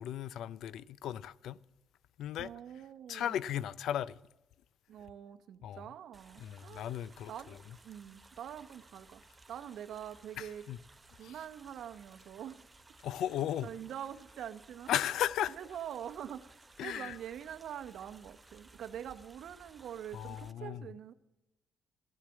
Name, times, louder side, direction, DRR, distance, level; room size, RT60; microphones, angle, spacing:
voice 1, 0.0-1.6 2.2-2.5 3.1-4.2 5.6-5.8 6.4-7.3 10.4-10.8 11.2-11.3 13.0-13.7 14.9-15.5 16.8-17.2 20.1-20.8, left 11 dB, 80° left, 0.4 m, -35 dB
voice 2, 2.4-3.4 4.9-6.9 7.3-7.6 7.8-9.2 9.5-10.6 11.1-12.7 13.6-14.9 15.5-21.1, right 9 dB, 70° right, 0.8 m, -45 dB
sound 1, 6.1-20.5, right 2 dB, 20° right, 0.7 m, -59 dB
14.5 x 7.4 x 8.4 m
cardioid pair, 90°, 0 cm